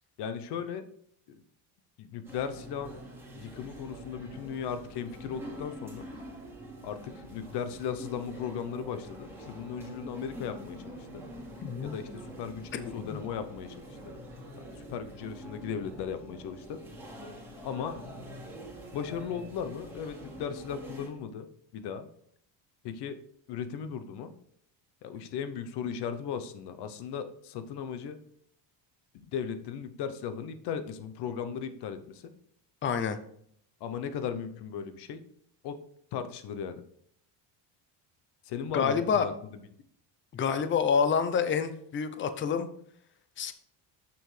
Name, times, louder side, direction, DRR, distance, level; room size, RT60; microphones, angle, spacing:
voice 1, 0.2-0.8 1.3-1.4 2.0-3.0 3.3-6.1 6.8-11.2 11.8-13.8 14.1-14.2 14.8-16.8 17.6-18.0 18.9-21.5 21.7-22.1 22.8-23.2 23.5-24.3 25.0-28.2 29.1-32.3 33.8-35.2 35.6-35.8 36.1-36.8 38.4-39.5, left 7 dB, 60° left, 10 dB, 0.8 m, -37 dB
sound 1, 2.2-21.1, right 1 dB, 5° right, 2.4 m, -45 dB
voice 2, 11.6-11.9 32.8-33.2 38.7-39.3 40.3-42.7 43.4-43.5, left 6 dB, 25° left, 11 dB, 0.5 m, -27 dB
7.1 x 6.4 x 3.2 m, 0.66 s
cardioid pair, 140°, 45 cm